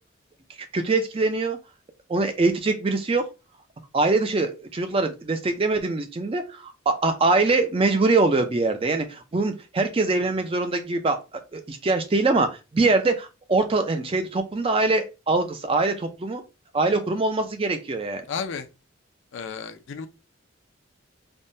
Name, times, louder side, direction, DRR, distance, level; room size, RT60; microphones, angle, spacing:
voice 1, 0.7-1.6 2.1-3.3 3.9-11.2 11.5-16.4 16.7-18.2, right 3 dB, 25° right, 0.4 m, -23 dB
voice 2, 18.3-18.7 19.3-20.1, left 5 dB, 65° left, 0.4 m, -32 dB
3.4 x 2.1 x 2.6 m
head